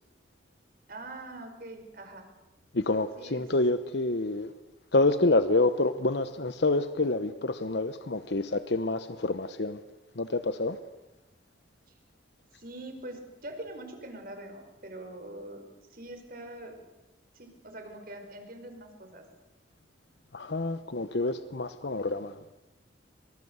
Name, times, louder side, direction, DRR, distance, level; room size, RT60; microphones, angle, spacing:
voice 1, 0.9-2.2 3.2-3.5 11.9-12.0 12.6-16.8 17.3-19.3, right 1 dB, 50° right, 6 dB, 5.3 m, -43 dB
voice 2, 2.7-4.5 4.9-9.8 10.1-10.8 20.3-22.4, left 2 dB, 65° left, 11 dB, 1.0 m, -27 dB
25.0 x 23.5 x 8.1 m, 1.0 s
head